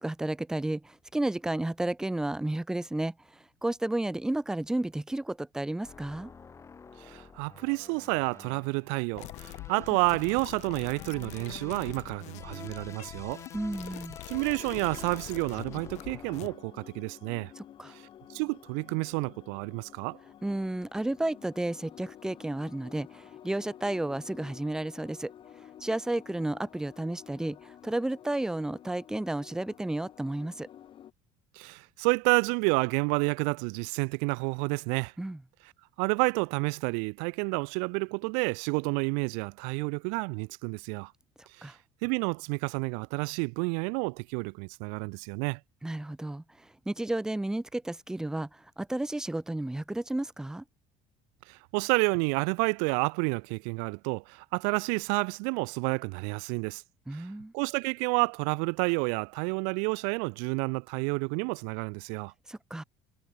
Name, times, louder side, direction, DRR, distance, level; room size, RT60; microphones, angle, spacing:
voice 1, 0.0-6.3 13.5-14.2 17.6-17.9 20.4-25.3 25.8-30.7 35.2-35.4 41.6-41.8 45.8-50.6 57.1-57.5 62.5-62.8, right 1 dB, 5° right, 0.7 m, -32 dB
sound 1, 5.8-16.6, left 5 dB, 20° left, 2.0 m, -49 dB
voice 2, 7.0-13.4 14.3-17.5 17.9-18.0 18.3-20.2 31.6-35.1 36.0-41.1 41.6-41.7 42.0-45.6 51.5-56.8 57.1-57.3 57.5-62.3, right 40 dB or more, 85° right, 0.5 m, -30 dB
sound 2, 9.1-16.5, left 18 dB, 65° left, 1.3 m, -44 dB
sound 3, 14.3-31.1, left 10 dB, 40° left, 1.9 m, -51 dB
cardioid pair, 135°, 13 cm